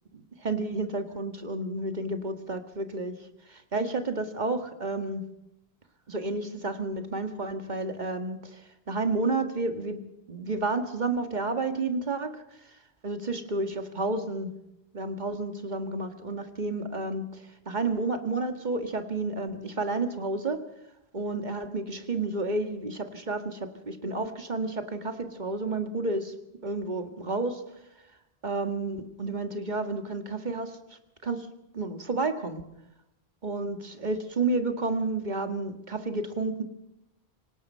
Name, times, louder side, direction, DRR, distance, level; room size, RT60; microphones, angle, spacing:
voice 1, 0.1-3.1 3.5-5.3 6.1-10.0 10.3-12.3 13.0-14.5 14.9-20.6 21.1-26.3 26.6-27.6 28.4-30.8 31.2-31.5 31.7-32.6 33.4-36.6, right 3 dB, 45° right, 7 dB, 2.0 m, -31 dB
26.5 x 18.5 x 5.6 m, 0.84 s
omnidirectional pair, 1.1 m